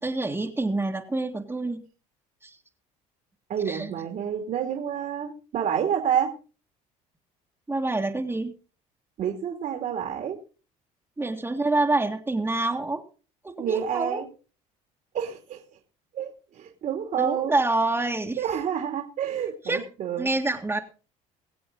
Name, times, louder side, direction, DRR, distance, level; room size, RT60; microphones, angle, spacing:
voice 1, 0.0-1.8 2.4-2.6 3.7-3.9 7.7-8.5 11.2-13.0 13.4-14.2 17.2-18.4 19.7-19.8 20.2-20.8, right 2 dB, 15° right, -1 dB, 1.9 m, -27 dB
voice 2, 3.5-6.3 9.2-10.4 13.6-14.3 15.1-15.6 16.1-17.5 18.4-20.3, right 8 dB, 55° right, 2 dB, 2.6 m, -28 dB
23.0 x 7.8 x 3.9 m, 0.36 s
supercardioid pair, 85°, 16 cm